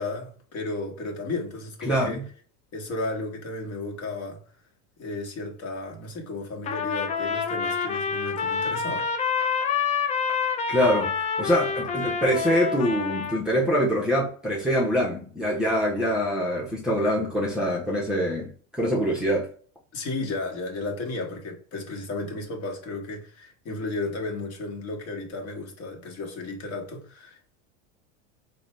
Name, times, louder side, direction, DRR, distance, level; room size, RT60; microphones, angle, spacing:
voice 1, 0.0-2.2 2.7-4.4 5.0-9.1 19.9-27.4, left 2 dB, 40° left, 1.3 m, -33 dB
voice 2, 1.8-2.2 10.7-19.5, equal, ahead, 0.8 m, -24 dB
Trumpet, 6.7-13.4, left 6 dB, 20° left, 0.4 m, -27 dB
3.9 x 2.3 x 3.0 m
supercardioid pair, 120°, 37 cm